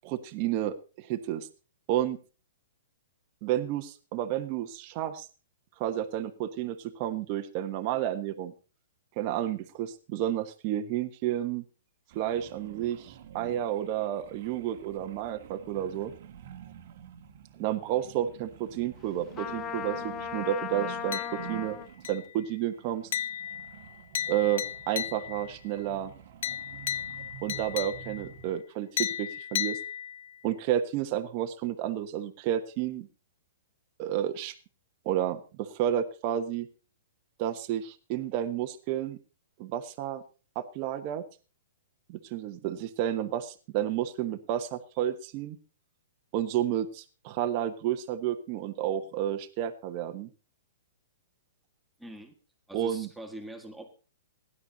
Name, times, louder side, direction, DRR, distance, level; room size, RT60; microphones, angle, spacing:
voice 1, 0.0-1.5 1.9-2.2 3.4-5.3 5.8-8.5 9.2-11.6 12.1-16.1 17.6-21.8 22.1-23.1 24.3-26.1 27.4-29.8 30.4-33.1 34.0-34.5 35.0-36.7 37.4-39.2 39.6-40.2 40.5-41.2 42.1-45.6 46.3-50.3 52.7-53.1, right 11 dB, 35° right, 6 dB, 1.2 m, -31 dB
sound 1, 12.1-22.3 22.7-28.5, right 9 dB, 55° right, 1.5 m, -48 dB
Trumpet, 19.3-21.9, left 7 dB, 20° left, 0.9 m, -36 dB
sound 2, 21.1-21.7 22.0-22.5 23.1-25.5 26.4-28.3 29.0-30.4, left 10 dB, 55° left, 0.6 m, -35 dB
voice 2, 52.0-52.4 52.7-53.9, right 1 dB, 5° right, 4 dB, 1.7 m, -43 dB
16.0 x 11.0 x 4.0 m, 0.34 s
hypercardioid pair, 160°, 0 cm